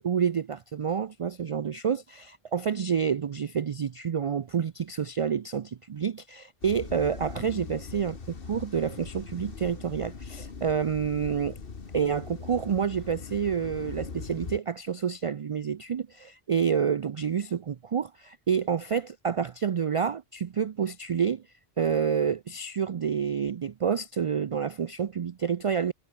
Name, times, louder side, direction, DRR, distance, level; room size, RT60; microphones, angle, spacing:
voice 1, 0.0-11.6 11.9-21.4 21.8-25.9, right 7 dB, 55° right, 0.4 m, -28 dB
sound 1, 6.6-14.6, left 5 dB, 60° left, 1.7 m, -41 dB
omnidirectional pair, 1.1 m